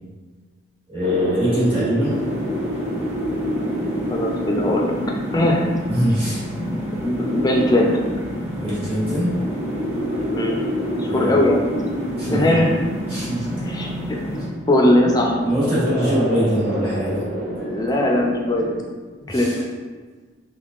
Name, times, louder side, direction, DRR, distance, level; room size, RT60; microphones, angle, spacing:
voice 1, 0.9-2.2 5.9-6.4 8.6-9.3 11.1-11.3 12.2-12.6 13.1-13.5 15.4-17.2 17.6-17.7 19.3-19.6, equal, 30° right, -11 dB, 1.5 m, -22 dB
sound 1, 1.0-18.8, equal, 50° right, 0.5 m, -28 dB
sound 2, 2.0-14.5, left 1 dB, 10° right, 0.8 m, -32 dB
voice 2, 4.1-4.9 5.3-5.6 7.0-8.0 10.3-10.6 11.0-11.6 12.2-12.8 13.6-14.4 14.7-15.4 17.6-18.7 19.3-19.5, left 1 dB, 20° left, 0 dB, 0.4 m, -19 dB
3.4 x 3.4 x 2.4 m, 1.4 s
head